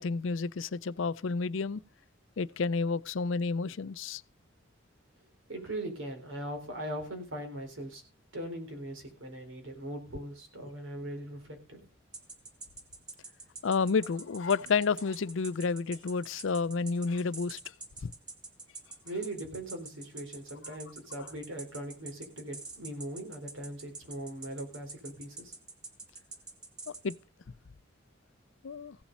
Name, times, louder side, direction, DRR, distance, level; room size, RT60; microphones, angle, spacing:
voice 1, 0.0-1.8 2.4-4.2 13.6-17.6 18.0-18.1 21.2-21.3 26.9-27.1 28.6-29.0, left 4 dB, 80° left, 0.5 m, -30 dB
voice 2, 5.5-8.0 8.3-11.8 19.0-25.5, right 1 dB, 85° right, 4.0 m, -40 dB
sound 1, 12.1-27.2, right 3 dB, 20° right, 1.8 m, -45 dB
16.0 x 7.2 x 5.3 m
head